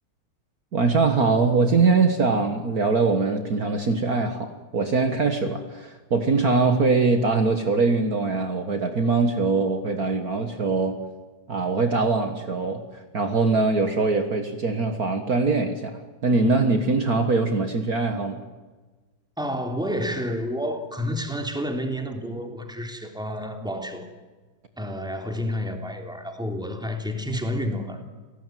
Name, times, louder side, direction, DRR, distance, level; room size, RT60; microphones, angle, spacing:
voice 1, 0.7-11.0 11.5-12.8 13.1-18.4, right 3 dB, 50° right, 6 dB, 2.0 m, -22 dB
voice 2, 19.4-24.1 24.8-28.0, equal, ahead, 4 dB, 3.2 m, -30 dB
29.5 x 18.5 x 9.3 m, 1.3 s
omnidirectional pair, 2.1 m